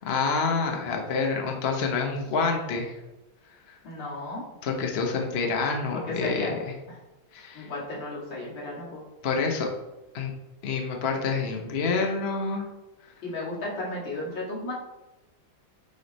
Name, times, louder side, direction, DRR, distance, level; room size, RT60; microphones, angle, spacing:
voice 1, 0.0-2.9 4.6-6.5 7.3-7.7 9.2-9.7 10.1-10.3 10.6-12.7, left 4 dB, 45° left, 2 dB, 0.9 m, -27 dB
voice 2, 3.8-4.4 5.9-6.5 6.9-7.0 7.5-9.0 13.2-14.7, left 2 dB, 85° left, -5 dB, 2.8 m, -34 dB
9.4 x 3.3 x 4.1 m, 1.0 s
omnidirectional pair, 2.0 m